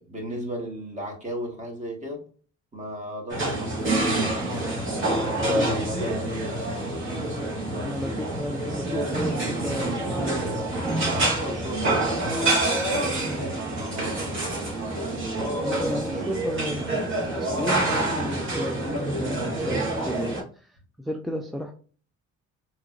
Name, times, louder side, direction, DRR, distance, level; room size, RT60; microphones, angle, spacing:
voice 1, 0.1-2.2 2.7-6.3 11.0-13.5 13.8-14.4 15.9-16.3, equal, 25° right, 1.6 m, -36 dB
sound 1, 3.3-20.4, right 2 dB, 40° right, 1.7 m, -27 dB
voice 2, 7.8-10.6 15.6-16.8 17.2-21.7, left 1 dB, ahead, 0.4 m, -33 dB
3.7 x 2.9 x 2.5 m
cardioid pair, 90°, 30 cm